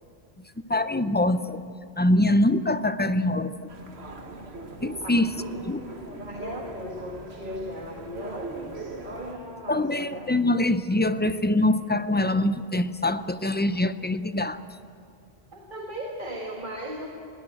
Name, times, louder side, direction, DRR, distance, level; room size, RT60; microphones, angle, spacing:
voice 1, 0.7-1.6 2.0-3.7 4.8-5.3 5.6-5.8 9.7-14.6, left 1 dB, 15° left, 12 dB, 0.4 m, -24 dB
sound 1, 3.7-9.4, right 3 dB, 75° right, 1.9 m, -40 dB
voice 2, 5.8-10.3 15.5-17.1, equal, 50° right, 0 dB, 2.0 m, -37 dB
20.5 x 18.0 x 9.0 m, 2.4 s
omnidirectional pair, 1.1 m